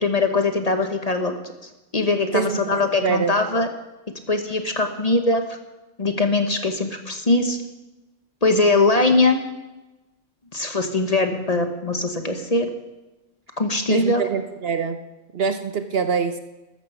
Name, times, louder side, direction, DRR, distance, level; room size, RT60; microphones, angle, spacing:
voice 1, 0.0-1.3 1.9-3.7 4.3-5.6 6.0-7.6 8.4-9.4 10.5-12.7 13.6-14.2, left 2 dB, 30° left, 6 dB, 1.2 m, -21 dB
voice 2, 2.3-3.3 13.9-15.0 15.3-16.4, right 6 dB, 55° right, 9 dB, 0.9 m, -24 dB
13.5 x 13.5 x 5.7 m, 1.1 s
omnidirectional pair, 1.3 m